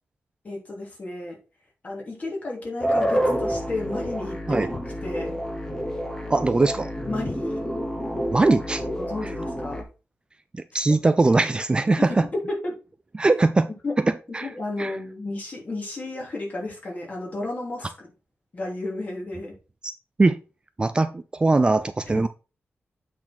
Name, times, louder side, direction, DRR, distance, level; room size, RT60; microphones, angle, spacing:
voice 1, 0.4-1.4 1.8-4.7 5.0-5.4 7.1-7.6 9.0-9.9 10.9-11.0 11.9-12.2 12.5-12.7 13.8-13.9 14.4-18.1 18.5-19.5 22.1-22.3, left 2 dB, 35° left, -2 dB, 3.0 m, -32 dB
sound 1, 2.8-9.8, equal, 15° left, 1.2 m, -28 dB
voice 2, 6.3-6.9 8.3-8.8 10.5-12.3 13.2-13.7 14.0-14.5 14.8-15.0 20.2-20.4 20.8-22.3, right 3 dB, 20° right, 11 dB, 0.4 m, -21 dB
8.1 x 4.3 x 4.4 m, 0.32 s
wide cardioid pair, 165°, 4 cm